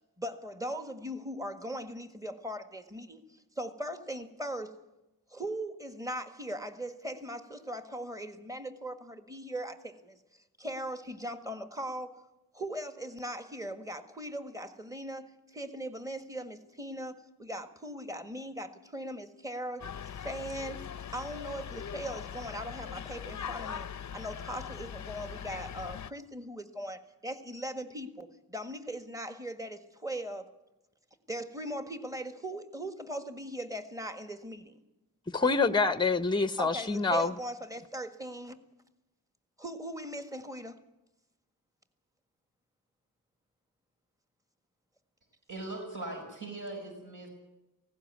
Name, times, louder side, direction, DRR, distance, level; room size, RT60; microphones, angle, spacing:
voice 1, 0.0-3.2 3.6-4.8 5.3-10.2 10.6-12.3 12.5-19.9 20.2-30.5 31.3-34.8 36.6-38.6 39.6-40.8, right 1 dB, 10° right, 1.6 m, -39 dB
sound 1, 19.8-26.1, left 8 dB, 50° left, 0.6 m, -41 dB
voice 2, 35.3-37.3, left 3 dB, 15° left, 0.8 m, -26 dB
voice 3, 45.5-47.3, right 2 dB, 60° right, 5.7 m, -40 dB
18.5 x 16.5 x 9.4 m
wide cardioid pair, 105°, 36 cm